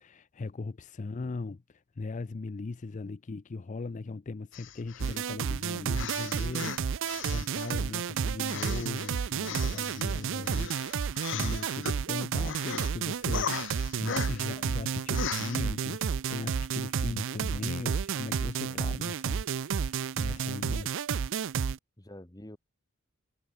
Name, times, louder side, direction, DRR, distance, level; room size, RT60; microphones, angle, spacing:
voice 1, 0.0-20.9, left 3 dB, 35° left, 0.4 m, -39 dB
sound 1, 4.5-5.2 5.9-7.9 8.4-12.0 12.3-12.9 13.3-14.6 15.1-15.6, left 7 dB, 55° left, 1.2 m, -38 dB
sound 2, 5.0-21.8, right 6 dB, 60° right, 0.5 m, -31 dB
voice 2, 10.2-10.7 18.6-19.0 22.0-22.6, left 1 dB, 15° left, 1.5 m, -49 dB
head